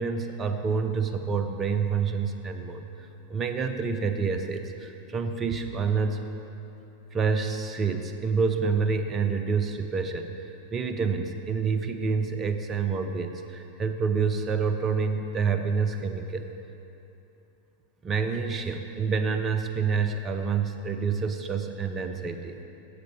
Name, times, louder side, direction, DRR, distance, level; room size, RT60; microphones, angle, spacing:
voice 1, 0.0-2.8 3.3-6.2 7.1-10.3 10.7-16.4 18.0-22.6, right 5 dB, 25° right, 7 dB, 0.6 m, -28 dB
12.5 x 7.7 x 3.3 m, 3.0 s
figure-of-eight pair, 90°, 0 cm